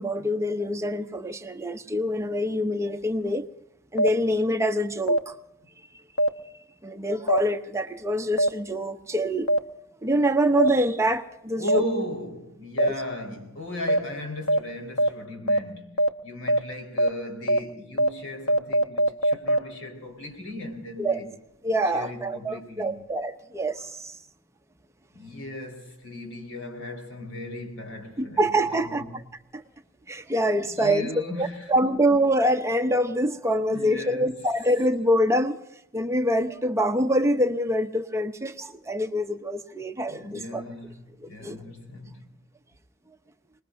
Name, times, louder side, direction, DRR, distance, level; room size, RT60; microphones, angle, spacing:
voice 1, 0.0-3.5 3.9-5.4 6.8-9.5 10.0-11.8 12.8-12.9 21.0-21.2 21.6-24.2 28.2-29.2 29.5-29.6 30.1-31.1 31.4-35.6 35.9-40.6 41.2-41.6, equal, 15° right, 0.7 m, -25 dB
sound 1, 4.0-4.1 5.1-5.2 6.2-6.3 7.3-7.4 8.4-8.5 9.5-9.6 10.6-10.7 11.7-11.8 12.8-12.9 13.9-14.0 14.5-14.6 15.0-15.1 15.5-15.6 16.0-16.1 16.5-16.6 17.0-17.1 17.5-17.6 18.0-18.1 18.5-19.6, equal, 70° left, 1.0 m, -20 dB
voice 2, 11.5-21.3 21.9-23.0 25.1-29.1 30.7-31.7 33.7-34.4 40.1-42.3, left 1 dB, 85° left, 4.1 m, -37 dB
25.5 x 20.5 x 2.6 m
head